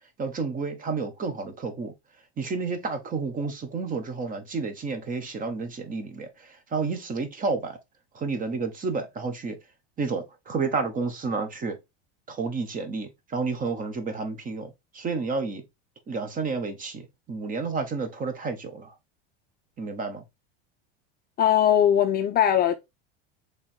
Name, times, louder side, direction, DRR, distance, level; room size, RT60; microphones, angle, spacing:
voice 1, 0.2-1.9 2.4-7.8 8.1-9.6 10.0-11.8 12.3-15.6 16.1-18.9 19.8-20.2, right 4 dB, 25° right, 1.1 m, -30 dB
voice 2, 21.4-22.8, left 10 dB, 30° left, 0.4 m, -20 dB
3.5 x 3.2 x 4.4 m
supercardioid pair, 120°, 31 cm